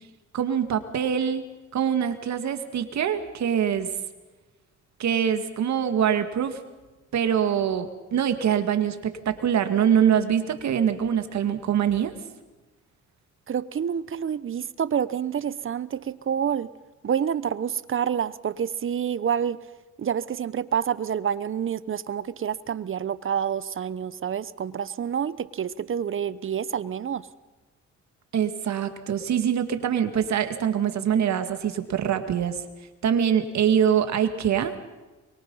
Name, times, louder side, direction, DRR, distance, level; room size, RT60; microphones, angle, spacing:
voice 1, 0.3-1.4 1.7-3.9 5.0-6.6 7.1-12.1 28.3-32.6 33.0-34.8, right 8 dB, 65° right, 8 dB, 2.3 m, -24 dB
voice 2, 13.5-16.7 17.0-19.6 20.0-27.3, right 8 dB, 45° right, 17 dB, 1.0 m, -28 dB
24.0 x 23.0 x 5.7 m, 1.2 s
cardioid pair, 90°, 30 cm